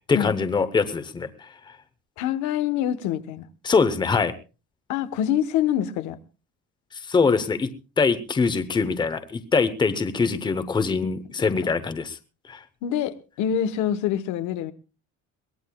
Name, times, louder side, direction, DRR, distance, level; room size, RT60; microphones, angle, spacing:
voice 1, 0.1-1.5 3.6-4.3 7.0-12.2 12.5-12.6, left 4 dB, 15° left, 0.9 m, -23 dB
voice 2, 2.2-3.4 4.9-6.2 11.4-11.5 12.8-14.7, left 10 dB, 80° left, 1.2 m, -25 dB
22.5 x 18.5 x 2.3 m
cardioid pair, 165°, 29 cm